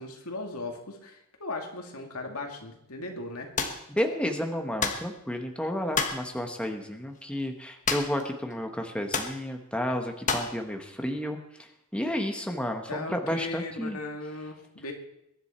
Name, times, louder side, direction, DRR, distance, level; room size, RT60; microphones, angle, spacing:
voice 1, 0.0-3.5 12.9-14.9, left 2 dB, 75° left, 2 dB, 2.3 m, -37 dB
sound 1, 3.6-3.8 4.8-5.1 5.9-6.2 7.9-8.3 8.5-8.6 9.1-9.4 10.3-10.6, left 5 dB, 35° left, 1.4 m, -28 dB
voice 2, 3.9-11.4 11.9-14.0, left 1 dB, 5° left, 4 dB, 1.2 m, -31 dB
22.5 x 10.5 x 4.4 m, 0.80 s
head